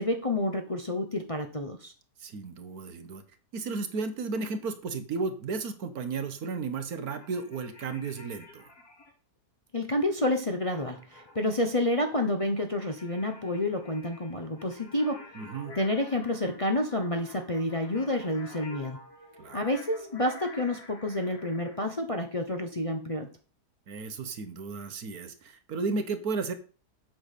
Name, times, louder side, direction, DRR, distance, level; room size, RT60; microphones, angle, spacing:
voice 1, 0.0-1.9 9.7-15.3 15.8-19.0 19.5-23.3, left 1 dB, 25° left, 4 dB, 0.9 m, -29 dB
voice 2, 2.2-3.2 3.5-8.7 15.3-15.8 19.4-19.7 23.9-26.5, right 4 dB, 65° right, 10 dB, 1.5 m, -34 dB
sound 1, 7.0-9.1 10.7-21.8, left 2 dB, 65° left, 3.8 m, -50 dB
8.2 x 5.9 x 6.7 m, 0.37 s
omnidirectional pair, 1.7 m